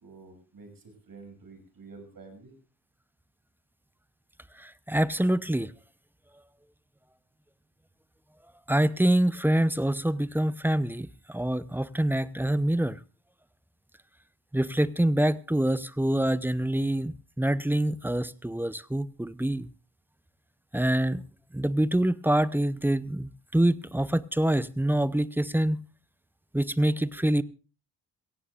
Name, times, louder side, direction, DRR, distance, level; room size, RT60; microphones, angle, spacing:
voice 1, 0.0-2.5, right 4 dB, 45° right, 6.9 m, -49 dB
voice 2, 4.6-5.7 8.7-13.0 14.5-19.7 20.7-21.2 21.5-25.8 26.5-27.4, right 1 dB, 5° right, 0.7 m, -26 dB
22.5 x 17.0 x 2.5 m
hypercardioid pair, 50°, 46 cm